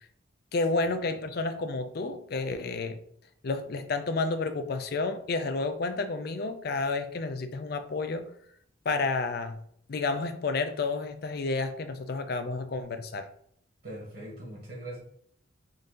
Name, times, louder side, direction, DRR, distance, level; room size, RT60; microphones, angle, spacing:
voice 1, 0.5-3.0 3.4-8.3 8.9-9.6 9.9-13.3, left 3 dB, 50° left, 0.4 m, -30 dB
voice 2, 13.8-15.0, right 1 dB, 50° right, 1.3 m, -41 dB
3.8 x 2.7 x 3.7 m
head